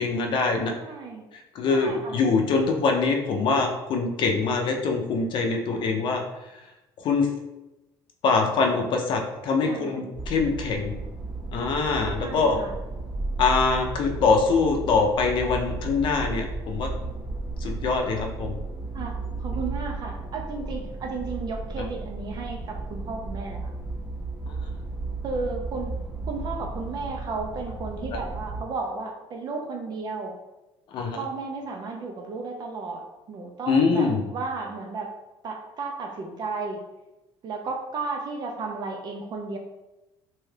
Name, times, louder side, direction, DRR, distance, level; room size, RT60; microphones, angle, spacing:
voice 1, 0.0-0.8 1.3-6.6 7.0-7.3 8.2-11.0 11.5-12.6 13.4-16.9 17.6-18.6 24.5-24.6 28.1-28.2 30.9-31.2 33.7-34.3, left 4 dB, 55° left, 3 dB, 0.5 m, -24 dB
voice 2, 0.8-1.3 1.7-2.3 5.7-6.0 9.6-10.1 12.2-12.7 18.9-23.6 25.2-25.9 26.2-30.3 31.1-35.1 35.4-36.8 37.4-39.6, right 4 dB, 45° right, 2 dB, 0.5 m, -34 dB
sound 1, 10.1-28.6, right 3 dB, 15° right, 0.7 m, -34 dB
2.7 x 2.3 x 3.2 m, 1.0 s
cardioid pair, 125°, 10 cm